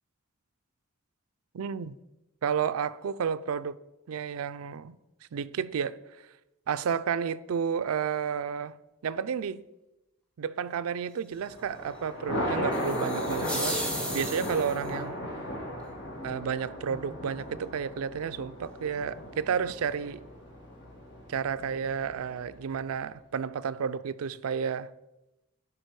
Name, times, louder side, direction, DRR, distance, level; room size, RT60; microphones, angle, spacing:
voice 1, 1.5-2.0 2.4-3.8 4.1-5.0 5.3-6.0 6.7-8.8 9.0-9.6 10.4-13.8 14.1-15.2 16.2-20.3 21.3-24.9, right 7 dB, 90° right, 0.4 m, -31 dB
Thunder, 11.4-22.8, equal, 55° left, 1.7 m, -36 dB
sound 1, 12.7-14.9, equal, 5° left, 1.3 m, -35 dB
11.0 x 5.1 x 4.7 m
head